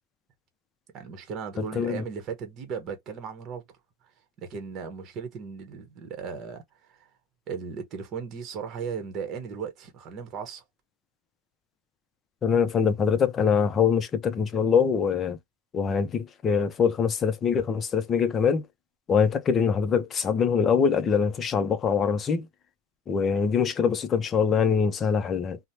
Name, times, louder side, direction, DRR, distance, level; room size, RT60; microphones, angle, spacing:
voice 1, 0.9-3.6 4.4-7.1 7.5-10.6, right 6 dB, 40° right, 0.9 m, -36 dB
voice 2, 12.4-15.4 15.7-18.7 19.1-22.5 23.1-25.6, left 6 dB, 25° left, 0.5 m, -23 dB
3.0 x 2.0 x 2.6 m
supercardioid pair, 130°, 0 cm